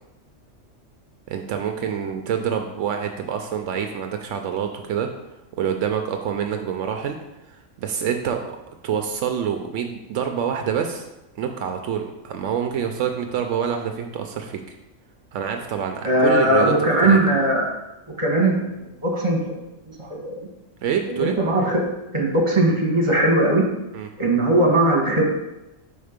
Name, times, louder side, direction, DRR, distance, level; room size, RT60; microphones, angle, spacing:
voice 1, 1.3-5.1 5.5-7.2 7.5-8.6 8.8-11.1 11.4-14.7 15.3-16.7 17.0-17.2 20.8-21.4 23.9-24.1, right 8 dB, 80° right, 5 dB, 0.9 m, -26 dB
voice 2, 16.0-17.7 18.2-19.4 20.0-20.4 21.1-21.8 22.1-23.6 24.2-25.2, right 1 dB, 25° right, -1 dB, 1.3 m, -19 dB
5.2 x 4.4 x 5.0 m, 0.95 s
omnidirectional pair, 1.3 m